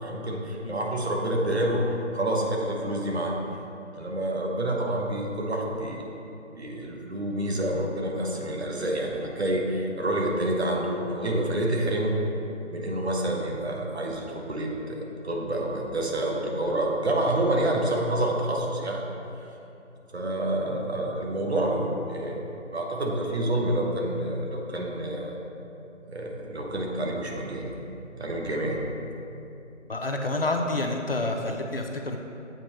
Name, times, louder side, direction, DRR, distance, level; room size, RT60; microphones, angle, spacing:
voice 1, 0.0-3.3 4.0-6.1 6.5-12.2 12.7-19.0 20.1-22.4 22.7-25.4 26.1-27.8 28.2-28.8, right 1 dB, 60° right, 0 dB, 1.0 m, -28 dB
voice 2, 29.9-32.2, left 2 dB, 50° left, 2 dB, 0.5 m, -28 dB
7.7 x 4.3 x 3.0 m, 2.8 s
figure-of-eight pair, 165°, 37 cm